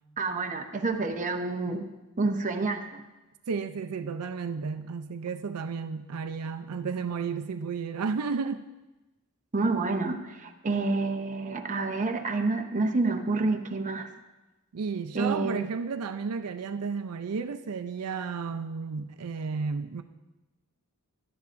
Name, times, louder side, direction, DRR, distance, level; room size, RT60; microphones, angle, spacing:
voice 1, 0.2-1.9 2.2-3.0 9.5-14.1 15.1-15.6, right 3 dB, 35° right, 0.7 m, -28 dB
voice 2, 3.5-8.6 14.7-20.0, right 5 dB, 80° right, 0.5 m, -32 dB
16.5 x 11.5 x 2.5 m
head